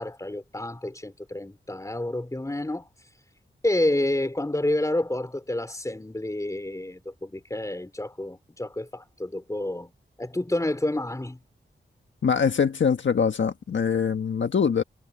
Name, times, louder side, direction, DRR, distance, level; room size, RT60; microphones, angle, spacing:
voice 1, 0.0-2.9 3.6-9.9 10.2-11.4, left 1 dB, 15° left, 3.3 m, -29 dB
voice 2, 12.2-14.8, left 6 dB, 70° left, 1.4 m, -23 dB
wide cardioid pair, 105°, 20 cm